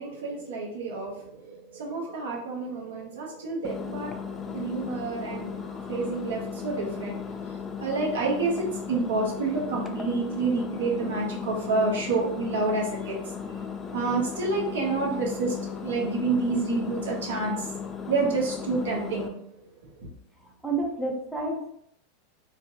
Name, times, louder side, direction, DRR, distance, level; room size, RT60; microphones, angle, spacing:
voice 1, 0.0-7.2 7.6-17.7 18.0-19.6 20.0-20.1, right 3 dB, 75° right, -2 dB, 0.7 m, -29 dB
voice 2, 1.9-2.3 5.6-6.0 20.4-21.7, right 2 dB, ahead, -1 dB, 0.7 m, -32 dB
Engine, 3.6-19.3, left 6 dB, 25° left, 0.3 m, -36 dB
2.5 x 2.1 x 2.6 m, 0.70 s
hypercardioid pair, 95°, 0 cm